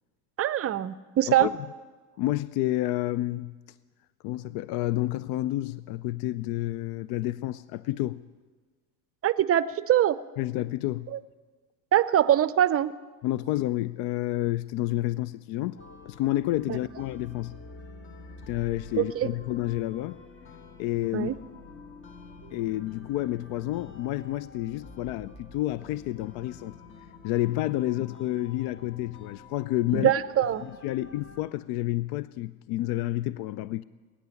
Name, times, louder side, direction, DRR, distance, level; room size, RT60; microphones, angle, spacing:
voice 1, 0.4-1.5 9.2-10.2 11.1-11.2 11.9-12.9 16.7-16.8 19.0-19.3 21.1-21.3 29.9-30.6, right 11 dB, 35° right, 0.6 m, -23 dB
voice 2, 2.2-3.5 4.2-8.2 10.4-11.1 13.2-15.8 16.1-17.6 18.5-20.2 20.8-21.3 22.5-26.8 27.2-30.1 30.6-33.8, left 16 dB, 60° left, 0.5 m, -29 dB
sound 1, 15.8-31.5, left 3 dB, 25° left, 1.4 m, -48 dB
20.0 x 9.8 x 7.0 m
hypercardioid pair, 90°, 44 cm